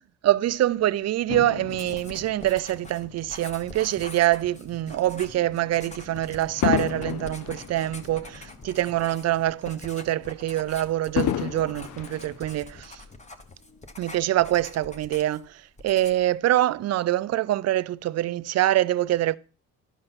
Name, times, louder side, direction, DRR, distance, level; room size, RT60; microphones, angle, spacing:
voice 1, 0.2-13.0 14.0-19.4, right 14 dB, 60° right, 0.5 m, -25 dB
Fireworks, 1.3-3.9 4.5-4.7 6.6-9.1 9.5-9.6 11.2-13.0 13.8-13.9, left 13 dB, 80° left, 0.6 m, -32 dB
Writing, 1.7-15.5 15.8-16.3, left 2 dB, 25° left, 1.3 m, -45 dB
sound 1, 3.9-13.3 13.6-14.4, left 5 dB, 60° left, 1.5 m, -53 dB
11.5 x 5.3 x 5.9 m
cardioid pair, 90°, 30 cm